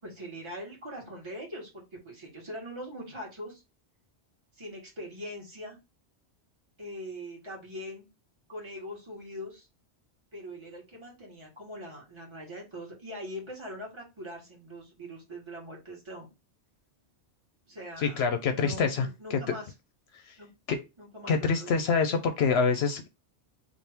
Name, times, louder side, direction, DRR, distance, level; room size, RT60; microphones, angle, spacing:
voice 1, 0.0-3.6 4.5-5.8 6.8-8.0 8.5-9.7 10.3-16.3 17.7-19.7 20.4-20.5 21.0-22.1, equal, 25° right, -2 dB, 1.4 m, -42 dB
voice 2, 18.0-19.4 20.7-20.8 21.3-23.1, left 5 dB, 70° left, 6 dB, 0.8 m, -26 dB
3.4 x 2.5 x 4.3 m, 0.26 s
omnidirectional pair, 1.2 m